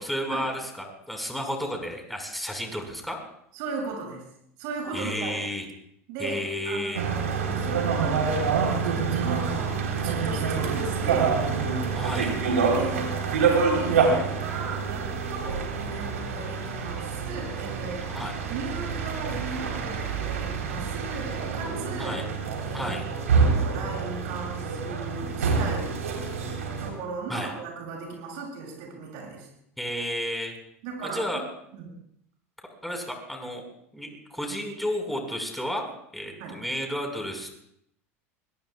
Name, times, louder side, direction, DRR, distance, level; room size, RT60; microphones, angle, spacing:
voice 1, 0.0-3.2 4.9-5.6 6.2-7.0 11.9-12.3 18.1-18.3 22.0-22.3 22.7-23.0 27.3-27.5 29.8-30.5 31.0-31.4 32.8-33.6 33.9-35.9 36.1-37.6, equal, ahead, 2 dB, 4.9 m, -32 dB
voice 2, 3.5-4.2 4.6-5.4 6.1-11.4 12.7-13.1 13.5-18.1 18.5-22.3 22.6-23.0 23.3-26.0 26.8-29.5 30.8-31.2 31.7-31.9 36.4-36.6, right 4 dB, 60° right, -1 dB, 7.2 m, -37 dB
sound 1, 6.9-26.9, right 5 dB, 85° right, 3.7 m, -27 dB
25.0 x 18.5 x 2.4 m, 0.72 s
hypercardioid pair, 85°, 8 cm